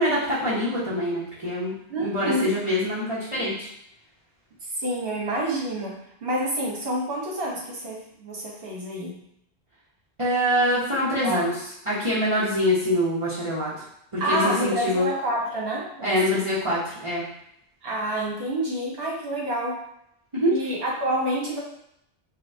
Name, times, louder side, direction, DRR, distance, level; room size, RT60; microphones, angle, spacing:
voice 1, 0.0-3.7 10.2-11.6 11.9-13.7 14.1-15.1 16.0-17.3 20.3-20.6, equal, 30° right, -9 dB, 1.0 m, -24 dB
voice 2, 1.9-2.5 4.8-9.2 11.2-11.4 14.2-16.4 17.8-19.9 20.5-21.6, right 1 dB, 65° right, -3 dB, 1.4 m, -28 dB
5.5 x 2.3 x 2.7 m, 0.75 s
omnidirectional pair, 1.1 m